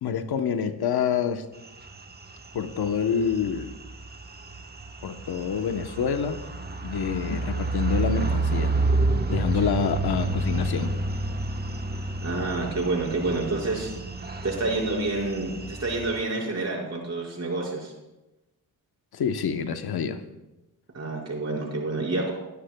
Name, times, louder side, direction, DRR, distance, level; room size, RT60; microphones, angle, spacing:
voice 1, 0.0-1.5 2.5-3.8 5.0-6.4 6.8-8.8 9.3-10.9 19.1-20.2, left 7 dB, 80° left, 8 dB, 1.0 m, -27 dB
sound 1, 1.6-16.2, right 2 dB, 25° right, 1.1 m, -30 dB
voice 2, 12.2-13.9 14.4-17.9 20.9-22.3, right 2 dB, 40° right, -3 dB, 5.2 m, -28 dB
20.5 x 12.0 x 2.3 m, 0.99 s
cardioid pair, 65°, 38 cm